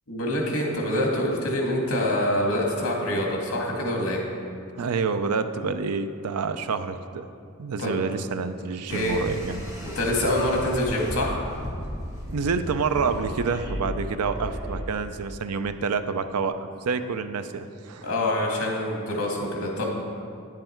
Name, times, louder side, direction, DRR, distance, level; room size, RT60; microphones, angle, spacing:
voice 1, 0.1-4.2 7.8-7.9 8.9-9.2 9.9-11.4 18.0-20.0, left 1 dB, 65° left, -1 dB, 1.9 m, -25 dB
voice 2, 4.8-7.3 7.6-9.6 12.3-18.1, right 5 dB, 90° right, 10 dB, 0.5 m, -28 dB
sound 1, 8.9-14.8, equal, 15° right, 1.3 m, -35 dB
10.0 x 7.6 x 4.5 m, 2.4 s
head